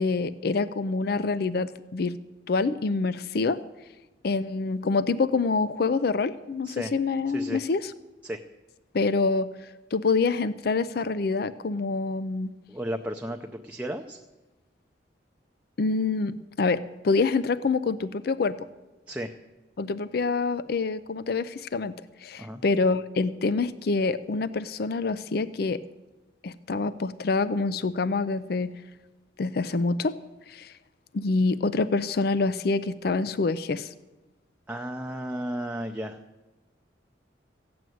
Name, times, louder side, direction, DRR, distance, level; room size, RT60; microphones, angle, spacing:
voice 1, 0.0-2.2 2.5-3.6 4.2-7.9 8.9-12.5 15.8-18.7 19.8-22.0 22.2-25.8 26.4-28.7 29.4-30.2 30.5-30.7 31.1-33.9, left 3 dB, 55° left, 15 dB, 0.4 m, -26 dB
voice 2, 12.7-14.2 19.1-19.3 22.4-22.6 34.7-36.2, equal, 10° right, 4 dB, 0.5 m, -33 dB
15.5 x 7.8 x 9.2 m, 1.1 s
head